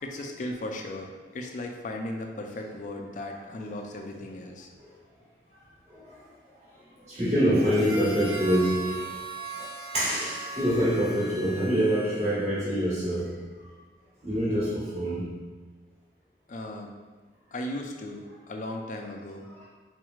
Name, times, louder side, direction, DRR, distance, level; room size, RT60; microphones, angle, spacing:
voice 1, 0.0-4.7 16.5-17.0 17.5-19.5, left 1 dB, 45° left, 3 dB, 0.4 m, -36 dB
voice 2, 7.1-9.1 9.9-13.4 14.2-15.4, equal, 40° right, -12 dB, 1.2 m, -25 dB
Harmonica, 7.5-12.5, right 3 dB, 65° right, 1.2 m, -39 dB
4.2 x 3.0 x 2.3 m, 1.3 s
head